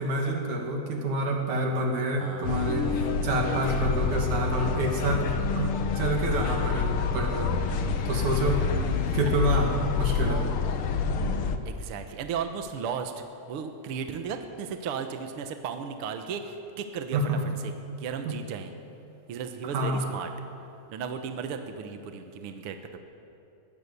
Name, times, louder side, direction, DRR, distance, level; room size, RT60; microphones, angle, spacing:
voice 1, 0.0-7.6 8.1-8.6 9.1-10.4 17.1-17.4 18.3-18.4 19.7-20.0, right 1 dB, 80° right, 1 dB, 3.9 m, -28 dB
voice 2, 2.2-2.7 8.1-9.2 11.7-13.1 13.5-17.7 18.0-18.7 19.3-20.3 20.9-23.0, right 6 dB, 60° right, 6 dB, 1.8 m, -35 dB
sound 1, 2.4-11.6, left 5 dB, 60° left, 1.7 m, -27 dB
22.0 x 17.0 x 8.2 m, 2.8 s
omnidirectional pair, 3.3 m